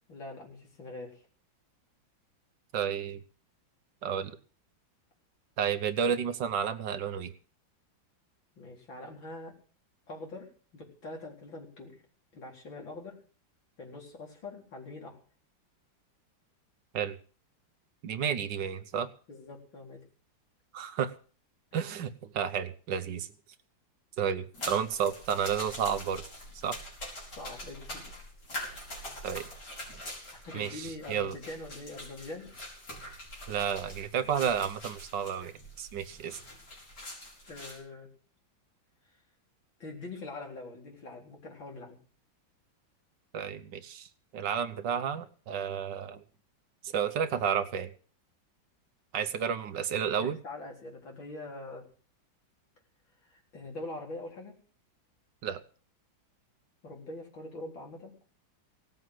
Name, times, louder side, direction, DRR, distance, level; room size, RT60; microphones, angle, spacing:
voice 1, 0.1-1.2 8.6-9.5 10.1-12.0 12.3-13.2 13.8-15.2 19.3-20.0 27.4-28.1 30.3-32.5 37.5-38.1 39.8-42.0 50.2-51.9 53.2-54.6 56.8-58.1, left 2 dB, 75° left, 0 dB, 4.7 m, -43 dB
voice 2, 2.7-3.2 4.0-4.3 5.6-7.3 16.9-17.2 18.0-19.1 20.7-21.1 21.7-23.3 24.2-26.2 26.6-26.8 29.2-29.5 30.5-31.4 33.5-36.4 43.3-46.2 46.8-47.9 49.1-50.4 55.4-55.6, right 8 dB, 70° right, 11 dB, 1.5 m, -31 dB
sound 1, 24.5-37.8, left 1 dB, 55° left, 5.8 m, -44 dB
18.0 x 7.7 x 7.7 m, 0.41 s
omnidirectional pair, 2.1 m